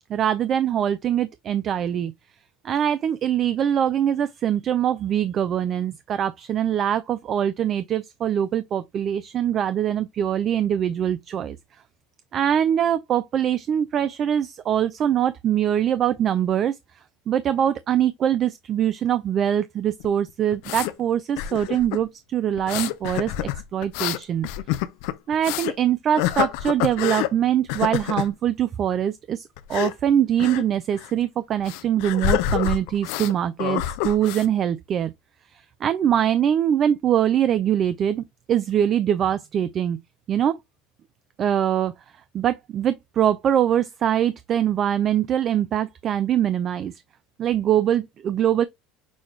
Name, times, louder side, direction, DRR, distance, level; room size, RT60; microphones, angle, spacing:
voice 1, 0.1-2.1 2.6-11.6 12.3-16.8 17.3-24.5 25.3-35.1 35.5-40.0 40.3-40.6 41.4-41.9 42.3-46.9 47.4-48.6, right 10 dB, 40° right, 0.4 m, -23 dB
sound 1, 20.0-20.9 21.4-22.0 22.6-25.8 26.2-27.3 27.7-28.3 29.6-29.9 30.4-30.6 30.9-31.1 31.7-33.3 33.6-34.5, left 13 dB, 75° left, 0.5 m, -27 dB
6.2 x 2.4 x 3.1 m
supercardioid pair, 110°, 0 cm